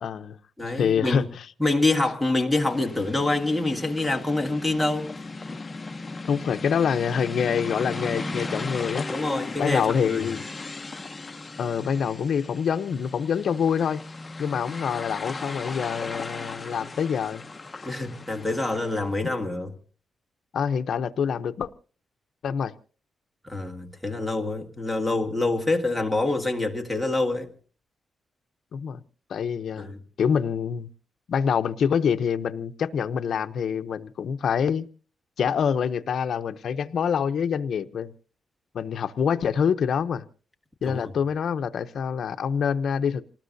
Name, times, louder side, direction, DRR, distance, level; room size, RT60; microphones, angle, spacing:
voice 1, 0.0-0.4 0.7-1.4 6.2-9.1 9.6-10.4 11.6-14.0 14.4-17.4 17.8-17.9 20.5-21.7 22.4-22.7 28.7-29.0 29.3-30.9 31.3-34.9 35.4-38.1 38.7-40.2 40.8-43.2, left 7 dB, 55° left, 0.7 m, -26 dB
voice 2, 0.6-1.3 1.6-5.1 9.1-10.3 17.8-19.7 23.4-27.5 29.8-30.0 40.8-41.1, left 2 dB, ahead, 1.7 m, -26 dB
sound 1, 2.6-19.1, left 3 dB, 15° left, 0.7 m, -37 dB
28.0 x 19.5 x 2.7 m
wide cardioid pair, 180°, 0 cm